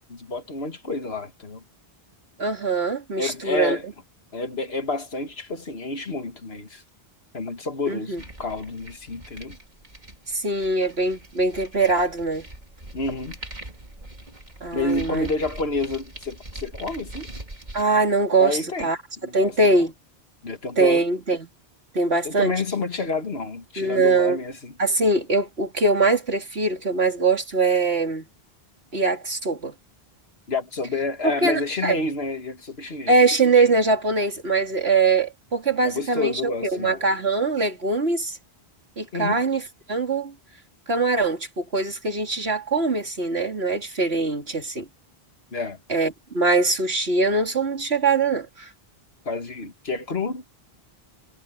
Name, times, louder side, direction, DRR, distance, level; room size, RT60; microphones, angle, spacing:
voice 1, 0.1-1.6 3.2-3.8 4.3-6.8 7.3-9.6 12.9-13.4 14.7-17.3 18.4-18.9 19.2-19.8 20.4-21.0 22.2-24.7 30.5-33.2 35.8-37.0 39.1-39.4 45.5-45.8 49.3-50.5, left 3 dB, 80° left, 2.2 m, -29 dB
voice 2, 2.4-3.8 7.9-8.2 10.3-12.5 14.6-15.3 17.7-19.0 19.3-19.9 20.8-21.5 21.9-22.5 23.8-24.4 24.8-28.3 28.9-29.7 31.4-32.0 33.1-38.4 39.0-39.6 39.9-40.3 40.9-44.9 45.9-48.7, right 3 dB, 85° right, 3.4 m, -22 dB
sound 1, 8.2-17.8, right 1 dB, 45° right, 3.2 m, -42 dB
omnidirectional pair, 1.0 m